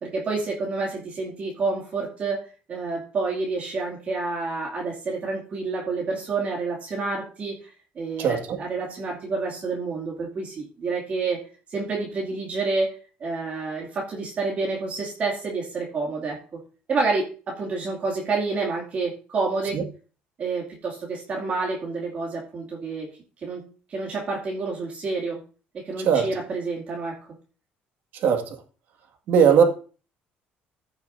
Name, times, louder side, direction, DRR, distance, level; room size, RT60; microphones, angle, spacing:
voice 1, 0.0-7.7 8.0-11.4 11.7-12.9 13.2-16.6 16.9-19.8 20.4-23.1 23.4-23.6 23.9-25.4 25.7-27.2, right 3 dB, 40° right, -3 dB, 2.5 m, -29 dB
voice 2, 8.2-8.6 19.7-19.8 26.0-26.3 28.2-28.5 29.3-29.6, right 7 dB, 65° right, 5 dB, 1.9 m, -19 dB
15.0 x 6.9 x 2.7 m, 0.37 s
cardioid pair, 140°, 4 cm